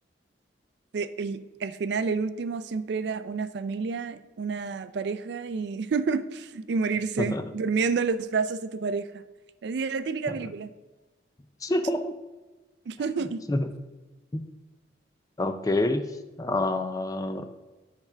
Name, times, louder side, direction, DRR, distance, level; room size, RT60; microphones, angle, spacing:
voice 1, 0.9-9.2 9.6-10.7 12.9-13.4, right 4 dB, 60° right, 12 dB, 0.4 m, -29 dB
voice 2, 7.2-7.5 10.3-10.4 11.6-12.1 13.5-13.7 14.3-14.5 15.4-16.1 16.4-17.5, left 2 dB, 20° left, 8 dB, 0.4 m, -27 dB
8.2 x 3.4 x 5.6 m, 1.2 s
head